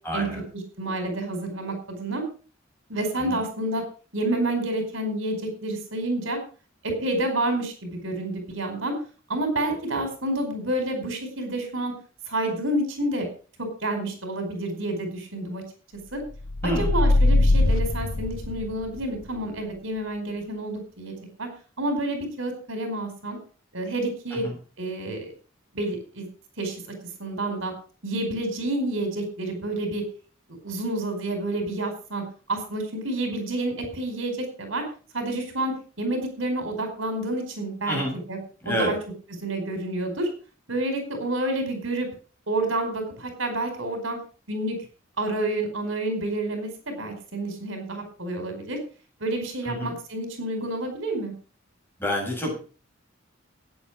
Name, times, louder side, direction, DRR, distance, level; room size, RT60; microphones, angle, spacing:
voice 1, 0.0-0.4 3.1-3.4 9.9-10.0 16.6-17.0 24.3-24.5 37.9-38.2 38.6-38.9 49.6-50.0 52.0-52.5, equal, 10° left, -1 dB, 7.2 m, -28 dB
voice 2, 0.8-2.2 2.9-3.8 4.1-6.4 6.8-8.9 9.3-11.9 12.3-13.3 13.8-15.6 16.1-16.2 16.6-21.5 21.8-23.4 23.7-24.4 24.8-25.3 25.7-26.3 26.6-26.9 27.2-27.7 28.0-30.0 30.6-32.2 32.5-34.8 35.1-38.0 38.3-38.4 38.6-38.9 39.4-40.3 40.7-42.1 42.5-44.2 44.5-44.8 45.2-48.8 49.2-51.3, right 1 dB, 75° right, 6 dB, 4.9 m, -29 dB
sound 1, 16.4-19.0, left 2 dB, 90° left, 1.1 m, -21 dB
16.0 x 9.4 x 5.0 m, 0.38 s
head